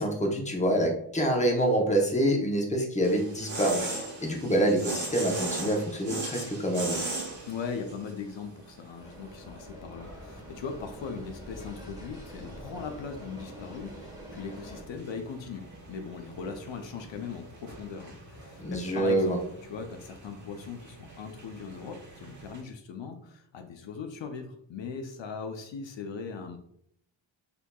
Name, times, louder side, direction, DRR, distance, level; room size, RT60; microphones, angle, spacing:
voice 1, 0.0-7.0 18.6-19.4, right 1 dB, 15° left, 1 dB, 0.8 m, -26 dB
sound 1, 3.0-22.6, right 2 dB, 40° right, 1.2 m, -40 dB
voice 2, 7.5-26.6, left 5 dB, 70° left, 6 dB, 0.6 m, -39 dB
sound 2, 9.0-14.8, equal, 10° right, 1.1 m, -46 dB
6.7 x 2.8 x 2.3 m, 0.70 s
wide cardioid pair, 120°, 46 cm